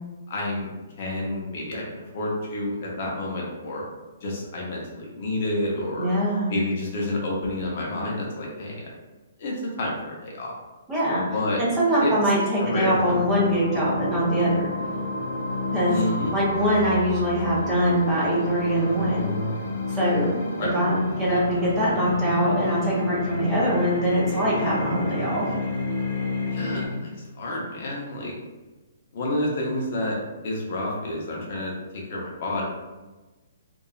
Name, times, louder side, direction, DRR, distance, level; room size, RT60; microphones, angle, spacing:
voice 1, 0.3-0.7 1.0-3.8 4.2-6.1 6.5-8.8 9.4-10.5 11.3-11.6 12.0-12.1 12.6-13.3 15.9-16.3 20.6-20.7 26.5-28.3 29.1-30.2 30.4-32.6, left 1 dB, 40° left, -3 dB, 0.6 m, -29 dB
voice 2, 6.0-6.5 10.9-11.2 11.6-14.7 15.7-16.0 16.3-19.3 19.9-25.5, equal, 10° right, -8 dB, 0.6 m, -23 dB
sound 1, 12.6-26.9, left 2 dB, 70° left, 0.8 m, -30 dB
2.8 x 2.2 x 2.3 m, 1.2 s
hypercardioid pair, 170°, 0 cm